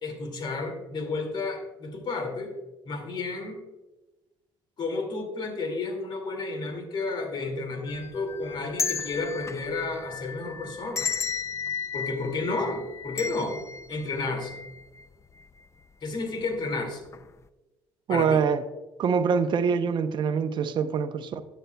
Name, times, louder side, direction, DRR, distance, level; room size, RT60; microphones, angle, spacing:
voice 1, 0.0-2.5 2.8-3.6 4.8-11.1 11.9-13.6 13.9-14.6 16.0-17.0 18.1-18.4, left 3 dB, 50° left, 4 dB, 2.2 m, -31 dB
sound 1, 7.9-15.0 15.4-15.5 16.4-16.7 17.1-17.2, left 6 dB, 30° left, 0.4 m, -34 dB
voice 2, 18.1-18.6 19.0-21.4, right 6 dB, 50° right, 10 dB, 0.7 m, -24 dB
13.0 x 9.2 x 2.2 m, 1.1 s
supercardioid pair, 90°, 10 cm